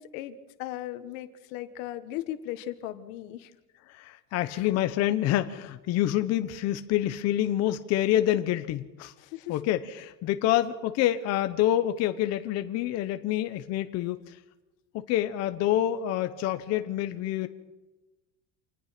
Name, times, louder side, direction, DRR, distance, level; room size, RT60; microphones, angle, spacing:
voice 1, 0.0-3.5 4.4-4.7 9.2-9.6, left 13 dB, 85° left, 11 dB, 1.7 m, -37 dB
voice 2, 3.9-9.1 9.5-14.4 14.9-17.5, left 12 dB, 40° left, 9 dB, 0.9 m, -27 dB
26.5 x 19.0 x 5.9 m, 1.1 s
cardioid pair, 175°, 38 cm